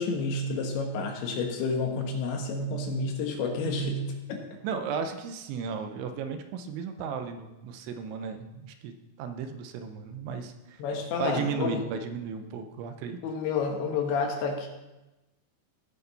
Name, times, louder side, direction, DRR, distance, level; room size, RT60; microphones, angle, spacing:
voice 1, 0.0-4.4 10.8-11.8 13.2-14.7, left 3 dB, 75° left, 2 dB, 3.6 m, -30 dB
voice 2, 4.6-10.8 11.2-13.2, right 6 dB, 80° right, 7 dB, 3.2 m, -35 dB
17.0 x 7.0 x 4.1 m, 1.0 s
omnidirectional pair, 5.4 m